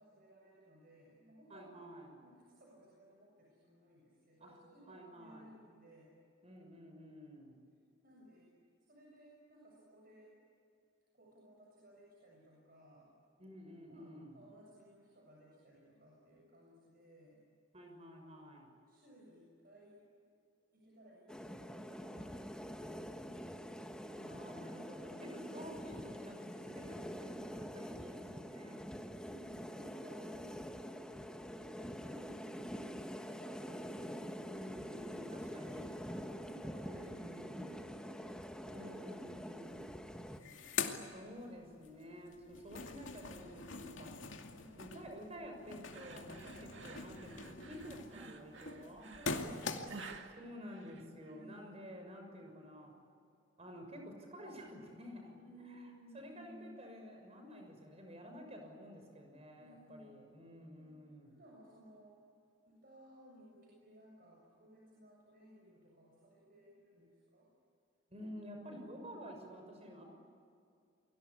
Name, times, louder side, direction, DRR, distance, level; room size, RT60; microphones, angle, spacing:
voice 1, 0.0-1.7 2.2-6.1 8.0-8.5 8.9-10.3 11.1-13.1 13.9-17.4 18.9-20.0 20.7-23.9 29.1-34.3 34.8-40.8 44.5-45.0 46.5-46.9 48.4-48.5 49.1-50.1 51.3-51.7 55.3-56.8 59.6-60.1 60.8-61.0 61.3-62.2 62.7-67.5 70.0-70.1, right 1 dB, 50° right, -3 dB, 7.1 m, -60 dB
voice 2, 1.5-2.2 4.4-5.5 6.4-7.6 13.4-14.4 17.7-18.7 24.1-28.8 34.4-36.1 36.8-37.8 38.7-39.9 41.1-49.1 50.4-52.9 53.6-55.3 55.7-55.9 56.1-61.3 68.1-70.0, equal, 35° right, 3 dB, 6.3 m, -51 dB
sound 1, 21.3-40.4, equal, 5° left, 1.3 m, -46 dB
sound 2, 39.8-39.9 40.1-41.9 42.3-50.2, left 4 dB, 85° left, 2.4 m, -43 dB
sound 3, 45.9-51.5, right 4 dB, 65° right, 2.4 m, -52 dB
29.5 x 23.0 x 8.5 m, 2.4 s
head